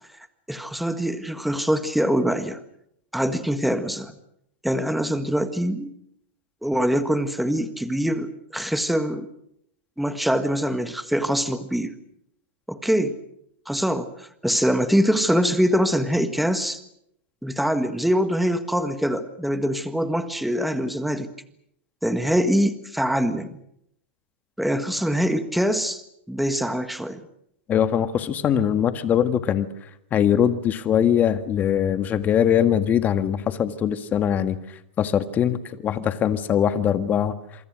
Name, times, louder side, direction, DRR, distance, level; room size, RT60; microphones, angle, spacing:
voice 1, 0.5-2.6 3.1-4.1 4.6-5.9 6.6-9.3 10.0-12.0 12.7-13.2 13.7-16.8 17.4-21.3 22.0-23.6 24.6-26.0 26.3-27.2, equal, ahead, 10 dB, 1.6 m, -24 dB
voice 2, 27.7-29.7 30.1-34.6 35.0-37.4, left 9 dB, 25° left, 10 dB, 1.7 m, -22 dB
27.0 x 24.5 x 6.4 m, 0.74 s
hypercardioid pair, 130°, 7 cm